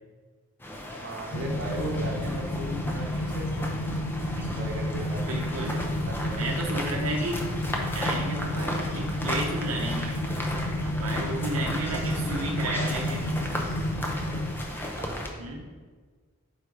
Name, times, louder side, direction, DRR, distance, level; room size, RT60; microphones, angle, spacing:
sound 1, 0.6-15.3, left 1 dB, 10° left, 0.5 m, -36 dB
voice 1, 1.0-3.9 4.2-6.8 12.2-13.7 15.0-15.5, right 1 dB, 50° right, 0 dB, 0.9 m, -39 dB
sound 2, 1.3-14.5, left 1 dB, 85° left, 0.7 m, -31 dB
voice 2, 5.3-5.8 6.3-7.5 7.8-10.2 10.8-13.2 15.4-15.7, right 2 dB, 85° right, 1 dB, 0.7 m, -33 dB
5.2 x 4.2 x 4.7 m, 1.5 s
head